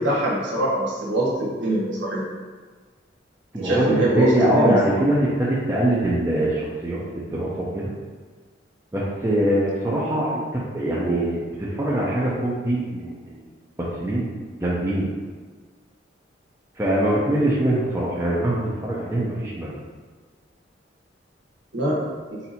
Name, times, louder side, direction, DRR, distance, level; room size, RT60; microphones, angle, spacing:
voice 1, 0.0-2.2 3.5-4.7 21.7-22.0, right 1 dB, 75° right, -6 dB, 1.4 m, -23 dB
voice 2, 3.5-7.9 8.9-13.5 13.8-15.1 16.7-19.8, right 1 dB, 15° right, -7 dB, 0.5 m, -23 dB
4.1 x 2.6 x 4.2 m, 1.4 s
head